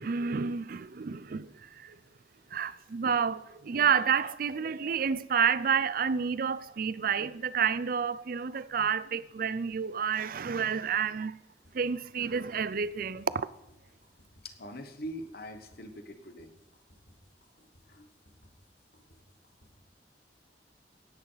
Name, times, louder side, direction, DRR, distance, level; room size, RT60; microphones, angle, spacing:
voice 1, 0.0-2.0 2.5-11.4 11.7-13.5, right 6 dB, 50° right, 0.5 m, -29 dB
sound 1, 11.6-19.7, equal, 80° left, 5.0 m, -61 dB
voice 2, 14.4-16.5 17.8-18.1, equal, 55° left, 1.3 m, -43 dB
17.0 x 10.5 x 4.0 m
head